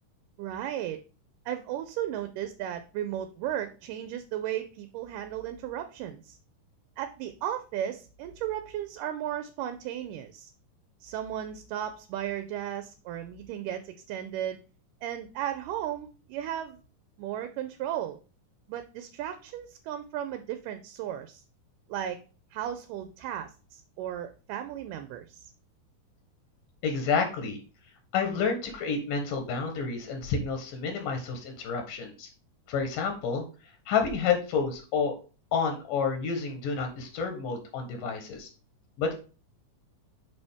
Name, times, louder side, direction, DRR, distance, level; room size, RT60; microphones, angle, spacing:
voice 1, 0.4-1.0 1.5-6.4 7.0-10.5 11.0-14.6 15.0-16.8 17.2-18.2 18.7-21.4 21.9-22.2 22.5-25.5, right 11 dB, 80° right, 9 dB, 2.2 m, -35 dB
voice 2, 26.8-27.6 28.1-32.3 32.7-33.4 33.9-35.1 35.5-38.5 39.0-39.1, left 5 dB, 80° left, 4 dB, 2.8 m, -29 dB
6.6 x 5.3 x 3.5 m, 0.35 s
omnidirectional pair, 3.8 m